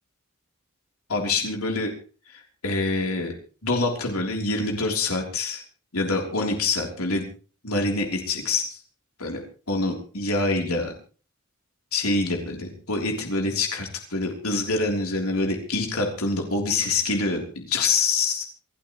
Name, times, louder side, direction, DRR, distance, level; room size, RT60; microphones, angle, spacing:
voice 1, 1.1-1.9 2.3-3.3 3.6-5.6 5.9-7.3 7.6-8.8 9.2-9.4 9.7-10.9 11.9-18.4, left 3 dB, 80° left, 1 dB, 3.5 m, -25 dB
27.0 x 12.5 x 3.1 m, 0.37 s
head